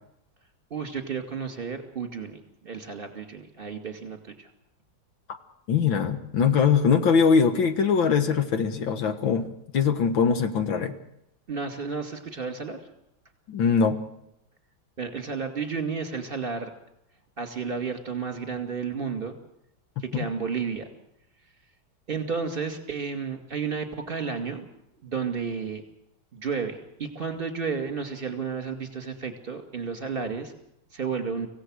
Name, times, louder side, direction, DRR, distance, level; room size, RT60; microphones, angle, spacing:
voice 1, 0.7-4.5 11.5-12.8 15.0-16.7 17.4-19.4 20.0-20.9 22.1-24.7 25.0-25.8 26.3-30.5 30.9-31.5, right 5 dB, 25° right, 6 dB, 2.5 m, -32 dB
voice 2, 5.7-10.9 13.5-14.0 20.1-20.3, left 6 dB, 75° left, 9 dB, 2.2 m, -22 dB
25.5 x 16.5 x 6.4 m, 0.81 s
omnidirectional pair, 2.2 m